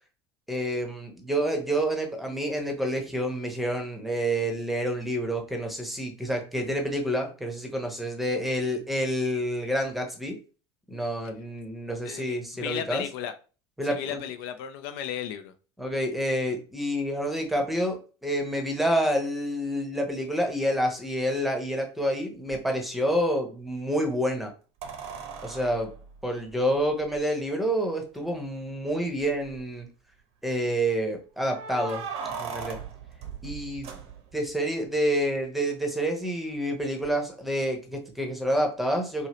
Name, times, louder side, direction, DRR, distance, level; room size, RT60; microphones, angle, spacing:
voice 1, 0.5-10.4 10.9-13.0 13.8-14.2 15.8-24.5 25.4-25.9 26.2-29.9 30.4-32.0 32.4-32.8 33.4-33.9 34.3-39.3, equal, ahead, 0.8 m, -28 dB
voice 2, 12.0-13.3 13.8-15.5, left 9 dB, 60° left, 0.4 m, -35 dB
sound 1, 22.5-22.6 24.8-27.2 28.2-28.3 28.5-28.6 29.2-29.7 31.4-34.5 37.0-37.1, right 5 dB, 50° right, 0.7 m, -39 dB
2.8 x 2.7 x 3.0 m
hypercardioid pair, 80°, 14 cm